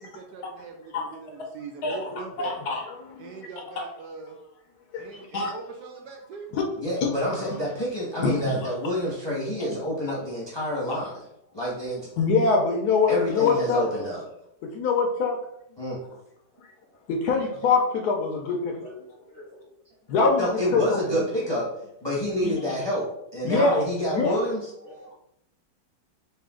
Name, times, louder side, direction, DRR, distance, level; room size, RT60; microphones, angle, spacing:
voice 1, 0.0-2.6 3.2-4.4 5.0-6.5, right 4 dB, 75° right, 3 dB, 1.1 m, -41 dB
voice 2, 2.4-3.3 4.9-5.5 6.5-6.6 7.0-7.1 7.4-7.5 8.2-8.7 12.2-13.8 14.7-15.4 17.1-18.9 20.1-21.0 22.3-22.7 23.4-23.8 24.1-24.4, left 4 dB, 70° left, 2 dB, 1.0 m, -24 dB
voice 3, 6.8-11.3 11.5-12.1 13.1-14.2 15.8-16.0 20.4-21.7 22.0-24.7, equal, 20° left, -6 dB, 0.8 m, -28 dB
voice 4, 18.8-19.8 22.8-22.9 24.8-25.2, left 1 dB, 40° right, -5 dB, 1.0 m, -47 dB
4.2 x 2.6 x 3.6 m, 0.78 s
omnidirectional pair, 1.9 m